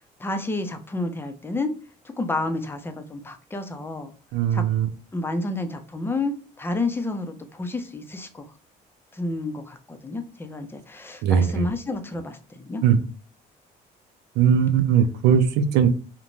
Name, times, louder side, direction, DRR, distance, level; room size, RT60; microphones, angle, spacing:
voice 1, 0.2-1.7 2.2-4.1 4.5-4.6 5.1-8.5 9.1-12.8, left 2 dB, 15° left, 7 dB, 0.4 m, -30 dB
voice 2, 4.3-4.9 11.2-11.6 12.8-13.0 14.4-15.9, right 8 dB, 85° right, 10 dB, 0.5 m, -19 dB
2.6 x 2.1 x 3.0 m, 0.38 s
cardioid pair, 110°, 17 cm